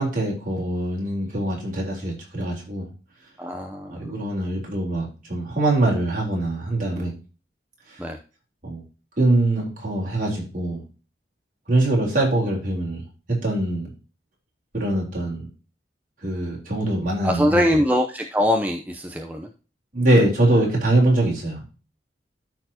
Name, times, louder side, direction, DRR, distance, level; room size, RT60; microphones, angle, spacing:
voice 1, 0.0-2.9 3.9-7.2 7.9-8.0 8.6-8.8 9.2-10.8 11.7-13.9 14.7-15.5 16.2-17.6 19.9-21.6, right 1 dB, 45° right, -3 dB, 3.9 m, -23 dB
voice 2, 3.4-3.9 8.0-8.2 17.2-19.5, left 1 dB, 10° right, 2 dB, 0.7 m, -22 dB
13.5 x 4.5 x 2.9 m, 0.33 s
head